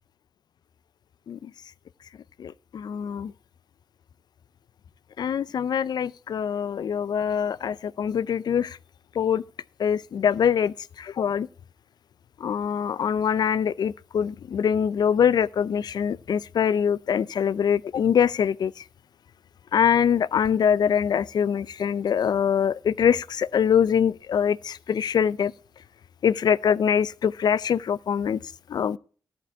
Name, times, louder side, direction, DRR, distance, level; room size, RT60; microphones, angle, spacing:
voice 1, 2.4-3.3 5.2-8.8 9.2-9.4 9.8-11.5 12.4-18.8 19.7-25.5 26.2-28.4 28.7-29.0, left 8 dB, 65° left, 0.5 m, -24 dB
13.5 x 4.7 x 8.2 m
cardioid pair, 95°, 8 cm